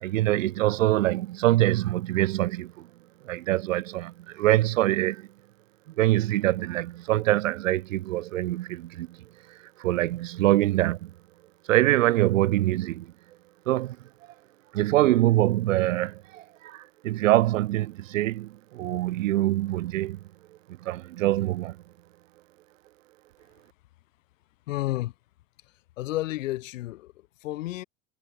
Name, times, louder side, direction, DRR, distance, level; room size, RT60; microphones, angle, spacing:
voice 1, 0.0-2.9 3.2-5.3 6.0-9.2 9.8-11.1 11.7-13.1 13.7-14.0 14.7-20.2 20.8-21.8, right 15 dB, 85° right, 0.7 m, -24 dB
voice 2, 24.7-25.1 26.0-27.1 27.4-27.8, left 16 dB, 75° left, 3.1 m, -31 dB
hypercardioid pair, 100°, 38 cm